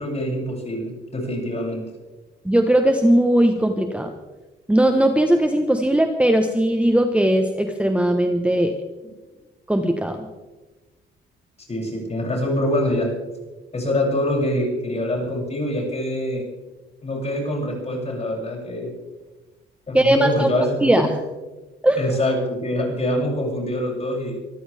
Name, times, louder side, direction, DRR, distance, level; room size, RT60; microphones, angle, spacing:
voice 1, 0.0-1.8 11.6-13.1 13.7-16.4 17.0-18.9 19.9-21.1 22.0-24.4, left 1 dB, 35° left, -2 dB, 7.4 m, -25 dB
voice 2, 2.4-4.1 4.7-8.7 9.7-10.3 19.9-20.5 20.8-21.2 21.8-22.0, right 1 dB, 5° right, 5 dB, 1.2 m, -18 dB
24.5 x 15.0 x 3.5 m, 1.2 s
cardioid pair, 90°, 20 cm